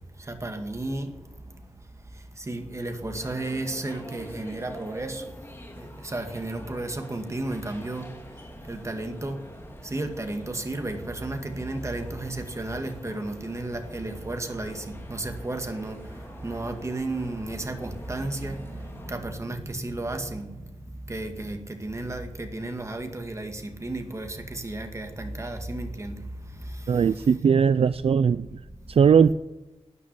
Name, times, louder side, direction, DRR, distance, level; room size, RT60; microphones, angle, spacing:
voice 1, 0.3-1.1 2.4-5.2 5.8-8.1 8.7-9.4 9.8-16.0 16.4-20.5 21.1-26.2, right 2 dB, 25° right, 2.0 m, -33 dB
sound 1, 3.1-19.1, left 1 dB, 20° left, 3.0 m, -47 dB
voice 2, 26.9-28.6 28.9-29.3, right 6 dB, 60° right, 0.4 m, -19 dB
13.0 x 9.7 x 9.7 m
wide cardioid pair, 125°, 11 cm